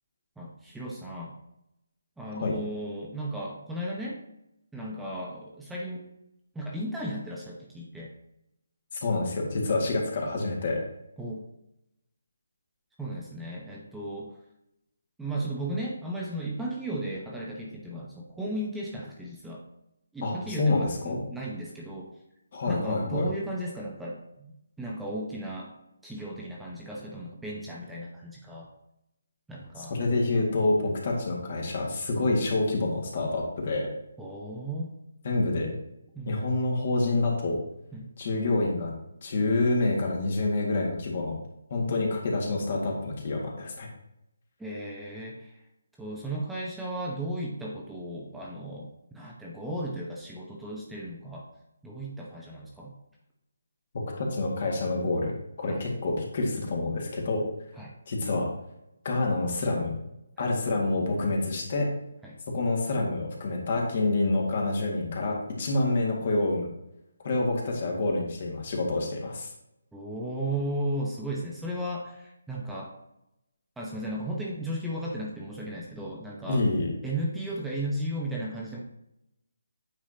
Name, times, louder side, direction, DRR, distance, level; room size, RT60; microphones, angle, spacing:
voice 1, 0.4-1.3 2.2-4.2 4.7-6.1 6.5-8.1 11.2-11.5 13.0-14.4 15.2-19.6 20.1-22.1 22.7-25.7 26.0-28.7 29.5-30.0 34.2-34.9 36.1-36.4 37.9-38.1 41.9-42.0 44.6-45.6 46.0-51.5 51.8-52.9 55.7-55.9 57.8-57.9 60.4-60.6 62.2-62.4 69.9-72.9 73.8-76.6 77.0-78.8, right 1 dB, 5° right, -4 dB, 0.8 m, -35 dB
voice 2, 8.9-10.8 20.2-21.2 22.5-23.3 29.8-33.9 35.2-35.7 36.3-37.6 38.2-38.9 39.2-41.4 41.7-43.9 53.9-57.4 58.1-58.5 59.0-59.9 60.4-61.9 62.5-66.7 67.2-69.5 76.5-76.9, left 2 dB, 45° left, -1 dB, 1.9 m, -27 dB
8.8 x 4.8 x 2.8 m, 0.83 s
figure-of-eight pair, 155°, 0 cm